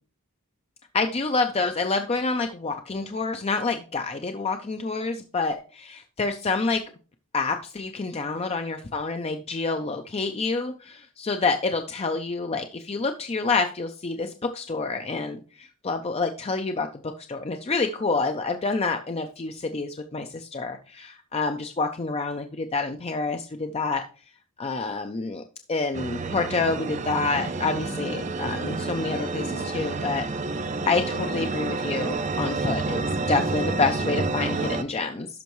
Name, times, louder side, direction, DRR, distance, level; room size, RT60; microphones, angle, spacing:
voice 1, 0.9-6.8 7.3-16.9 17.3-24.0 24.6-25.4 25.7-30.3 30.9-35.3, left 3 dB, 30° left, 6 dB, 0.5 m, -28 dB
sound 1, 25.9-34.8, right 3 dB, 35° right, 0.5 m, -29 dB
12.0 x 5.6 x 3.1 m, 0.40 s
head